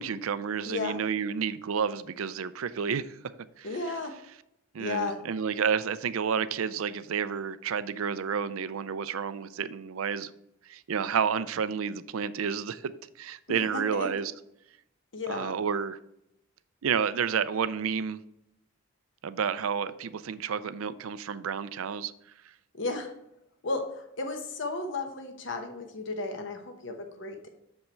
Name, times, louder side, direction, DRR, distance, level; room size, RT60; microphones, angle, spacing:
voice 1, 0.0-3.2 3.6-3.7 4.7-10.3 10.7-12.9 13.2-14.3 15.3-16.0 16.8-18.2 19.2-22.1, right 7 dB, 80° right, 0.4 m, -30 dB
voice 2, 0.7-1.0 3.6-4.1 4.8-5.2 13.6-14.1 15.1-15.6 22.7-23.1 23.6-27.5, left 3 dB, 60° left, 0.9 m, -34 dB
7.0 x 5.4 x 4.5 m
head